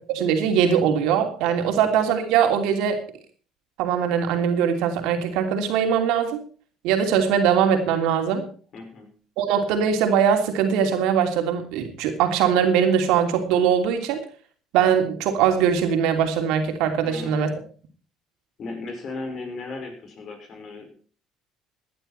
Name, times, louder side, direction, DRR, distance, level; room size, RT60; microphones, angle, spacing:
voice 1, 0.1-3.0 3.8-6.4 6.8-8.4 9.4-14.2 14.7-17.5, right 8 dB, 80° right, 5 dB, 3.0 m, -21 dB
voice 2, 8.7-9.1 17.0-17.6 18.6-21.1, left 3 dB, 50° left, 4 dB, 5.8 m, -36 dB
17.5 x 10.5 x 4.4 m, 0.41 s
supercardioid pair, 80°, 0 cm